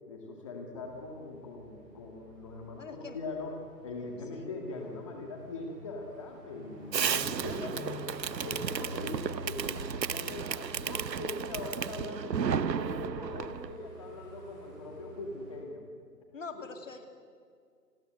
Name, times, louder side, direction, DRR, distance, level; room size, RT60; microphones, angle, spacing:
voice 1, 0.1-3.5 3.8-8.0 8.4-15.8 16.5-16.7, left 3 dB, 20° left, 2 dB, 2.2 m, -41 dB
sound 1, 0.7-15.6, right 1 dB, 10° right, 4.7 m, -48 dB
voice 2, 2.8-3.2 4.3-4.5 7.4-7.9 16.3-17.1, left 5 dB, 50° left, 7 dB, 2.6 m, -44 dB
Fireworks, 6.9-13.7, right 7 dB, 85° right, 0.9 m, -33 dB
29.5 x 21.0 x 7.9 m, 2.1 s
hypercardioid pair, 170°, 49 cm